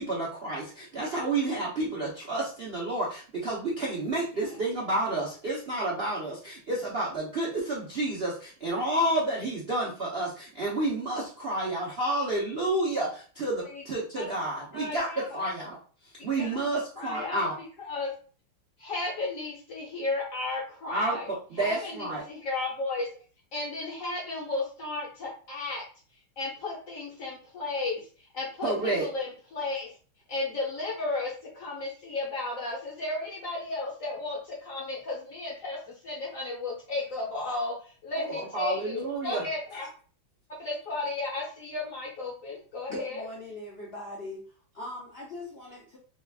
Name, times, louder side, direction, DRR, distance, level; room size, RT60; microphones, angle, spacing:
voice 1, 0.0-15.8 16.2-17.6 20.9-22.2 28.6-29.0 38.1-39.4, right 2 dB, 70° right, -5 dB, 0.5 m, -30 dB
voice 2, 14.7-15.4 16.4-16.6 17.0-17.5 17.9-18.1 18.8-21.3 21.6-23.1 23.5-25.8 26.4-28.0 28.3-29.9 30.3-37.7 38.0-39.9 40.6-43.2, left 2 dB, 60° left, -3 dB, 0.9 m, -34 dB
voice 3, 42.9-44.4 44.7-46.0, left 1 dB, 80° left, -5 dB, 0.5 m, -40 dB
3.4 x 2.3 x 3.4 m, 0.39 s
omnidirectional pair, 2.3 m